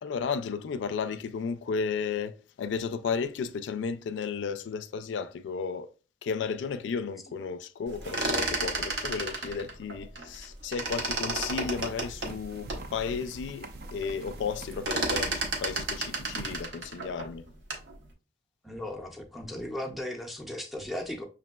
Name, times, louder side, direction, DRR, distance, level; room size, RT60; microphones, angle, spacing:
voice 1, 0.0-5.9 6.2-17.5, left 5 dB, 90° left, 0.3 m, -33 dB
sound 1, 7.9-10.5 10.7-12.9 13.4-13.5 13.7-14.1 14.4-17.9, right 2 dB, 75° right, 0.8 m, -32 dB
sound 2, 10.8-16.6, right 2 dB, 55° right, 0.4 m, -44 dB
voice 2, 18.6-21.2, left 1 dB, ahead, 0.4 m, -36 dB
5.9 x 2.5 x 2.2 m
head